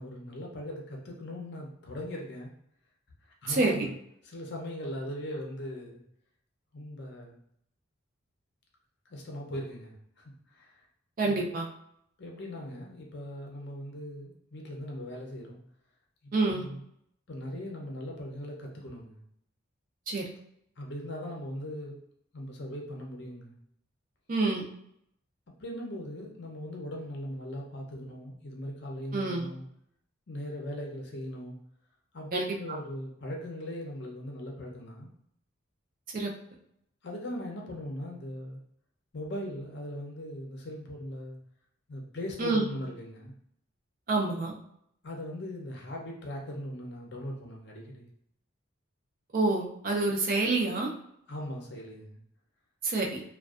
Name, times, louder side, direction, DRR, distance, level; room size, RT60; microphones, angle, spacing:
voice 1, 0.0-2.5 3.4-3.9 4.2-6.0 6.7-7.4 9.1-10.2 10.5-10.8 11.2-11.4 12.2-15.6 16.5-16.8 17.3-19.2 20.8-22.0 22.3-23.5 25.6-29.6 30.3-31.6 32.1-35.1 37.0-38.6 39.1-41.4 41.9-43.3 45.0-48.1 51.3-52.2, left 1 dB, 55° left, 0 dB, 0.6 m, -39 dB
voice 2, 3.5-3.9 11.2-11.7 16.3-16.7 20.1-20.2 24.3-24.7 29.1-29.5 32.3-32.5 36.1-36.3 42.4-42.7 44.1-44.5 49.3-50.9 52.8-53.2, right 3 dB, 40° right, 0 dB, 0.4 m, -27 dB
2.5 x 2.2 x 2.3 m, 0.73 s
head